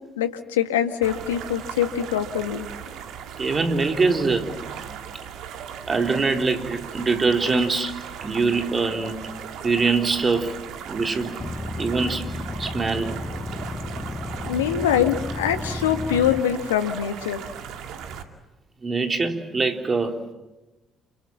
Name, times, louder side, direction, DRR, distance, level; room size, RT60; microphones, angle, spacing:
voice 1, 0.2-2.7 14.4-17.4, left 10 dB, 80° left, 8 dB, 1.7 m, -24 dB
sound 1, 1.0-18.2, right 8 dB, 65° right, 2.4 m, -38 dB
voice 2, 3.4-4.5 4.9-5.0 5.9-7.9 8.2-9.3 9.6-10.6 10.9-11.4 11.8-12.3 12.6-13.2 18.8-20.2, right 4 dB, 30° right, 5 dB, 3.8 m, -23 dB
sound 2, 11.4-16.4, left 2 dB, 25° left, 1.7 m, -33 dB
29.5 x 27.0 x 7.4 m, 1.0 s
hypercardioid pair, 50°, 0 cm